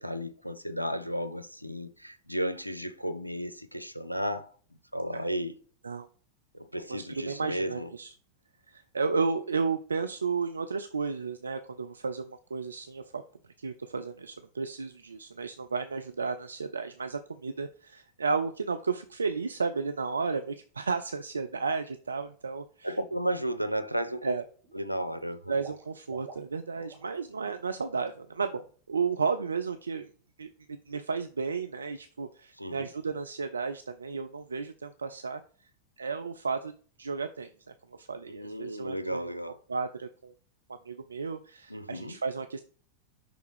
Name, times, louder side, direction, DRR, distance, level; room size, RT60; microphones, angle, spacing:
voice 1, 0.0-4.5 4.9-5.5 6.5-7.9 22.8-24.4 24.7-25.5 32.6-32.9 38.3-39.6 41.7-42.2, equal, 90° left, 0.5 m, -33 dB
voice 2, 6.9-8.1 8.7-13.2 13.6-23.0 24.2-24.4 25.5-30.1 30.4-35.4 36.0-36.7 37.0-37.5 37.9-39.3 39.7-40.3 40.9-42.6, right 4 dB, 75° right, 0.3 m, -33 dB
Water / Liquid, 23.0-23.3 23.6-24.3 24.6-27.2 27.4-27.6 28.0-28.1, right 5 dB, 45° right, 1.8 m, -51 dB
6.1 x 3.4 x 4.8 m
figure-of-eight pair, 90°, 0 cm